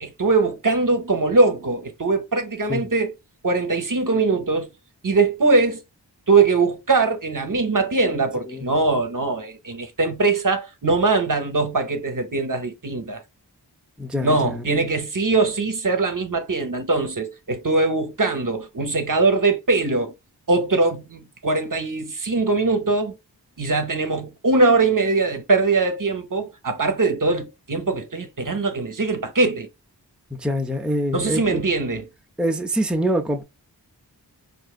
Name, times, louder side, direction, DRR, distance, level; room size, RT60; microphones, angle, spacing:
voice 1, 0.0-3.1 3.4-4.7 5.0-5.8 6.3-13.2 14.2-20.1 20.5-23.1 23.6-29.7 31.1-32.1, right 3 dB, 50° right, 0.8 m, -21 dB
voice 2, 14.0-14.8 30.4-31.6 32.4-33.4, equal, ahead, 0.6 m, -25 dB
4.7 x 2.6 x 2.3 m
wide cardioid pair, 50°, 41 cm